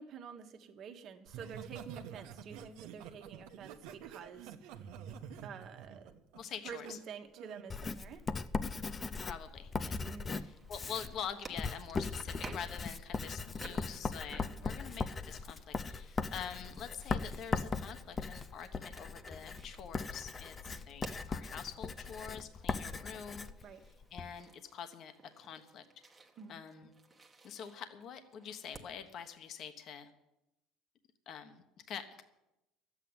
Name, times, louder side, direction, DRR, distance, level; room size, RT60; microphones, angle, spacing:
voice 1, 0.0-4.7 5.1-6.2 6.6-8.2 10.0-10.5 13.3-13.4 20.6-20.7 23.6-23.8 26.4-26.6, right 6 dB, 45° right, 6 dB, 1.5 m, -49 dB
Laughter, 1.3-6.9 7.4-7.7, right 8 dB, 85° right, 1.1 m, -48 dB
voice 2, 6.3-7.0 9.0-10.0 10.4-23.5 24.1-25.8 26.5-26.9 27.4-30.1 31.3-32.2, left 8 dB, 45° left, 8 dB, 1.2 m, -46 dB
Writing, 7.7-24.3, left 4 dB, 20° left, 0.5 m, -39 dB
sound 1, 10.2-29.4, right 3 dB, 15° right, 1.2 m, -56 dB
12.5 x 8.4 x 9.5 m, 0.93 s
cardioid pair, 150°, 0 cm